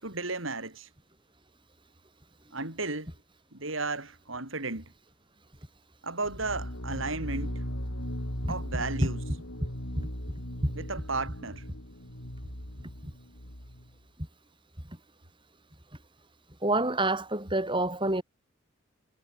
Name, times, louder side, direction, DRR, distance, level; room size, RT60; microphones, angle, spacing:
voice 1, 0.0-0.9 2.5-3.1 3.5-4.9 6.0-7.6 8.5-9.2 10.7-11.6, right 3 dB, 70° right, 5.5 m, -34 dB
sound 1, 6.3-13.9, equal, 85° left, 7.6 m, -38 dB
voice 2, 16.6-18.2, right 2 dB, 25° right, 7.1 m, -27 dB
head